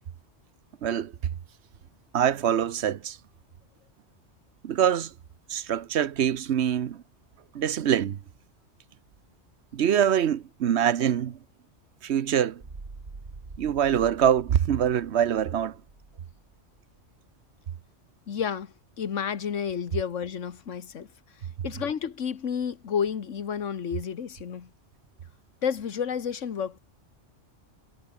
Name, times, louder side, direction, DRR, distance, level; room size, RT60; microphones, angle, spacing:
voice 1, 0.8-1.1 2.1-3.2 4.6-5.1 5.5-7.0 7.5-8.2 9.7-11.4 12.0-12.6 13.6-15.8, right 9 dB, 65° right, 1.1 m, -24 dB
sound 1, 12.6-16.8, right 3 dB, 45° right, 2.3 m, -45 dB
voice 2, 18.3-21.1 21.6-24.7 25.6-26.8, left 7 dB, 80° left, 1.6 m, -31 dB
omnidirectional pair, 1.2 m